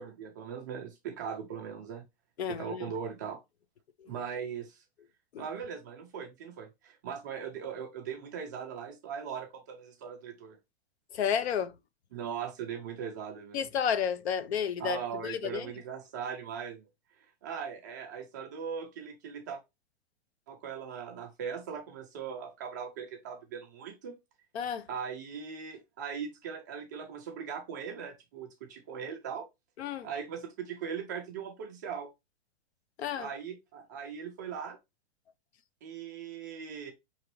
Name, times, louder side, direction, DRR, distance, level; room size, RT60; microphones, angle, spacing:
voice 1, 0.0-2.0 2.5-3.4 4.1-4.8 5.4-10.6 12.1-13.6 14.8-16.8 17.4-19.6 20.5-24.1 24.9-29.4 30.0-32.1 33.2-34.8 35.8-36.9, right 7 dB, 20° right, 0.4 m, -39 dB
voice 2, 2.4-2.9 4.0-4.1 5.3-5.5 11.1-11.7 13.5-15.7 24.5-24.8 29.8-30.1 33.0-33.3, left 8 dB, 85° left, 0.7 m, -32 dB
4.8 x 3.0 x 3.0 m
supercardioid pair, 170°, 31 cm